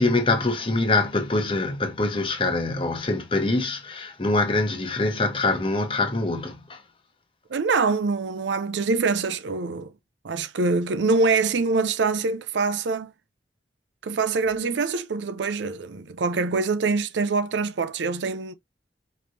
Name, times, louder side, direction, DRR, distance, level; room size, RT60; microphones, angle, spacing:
voice 1, 0.0-6.8, left 2 dB, 30° left, 1.1 m, -24 dB
voice 2, 7.5-9.9 10.2-13.1 14.0-18.5, right 4 dB, 85° right, 0.5 m, -24 dB
5.1 x 3.2 x 2.7 m
head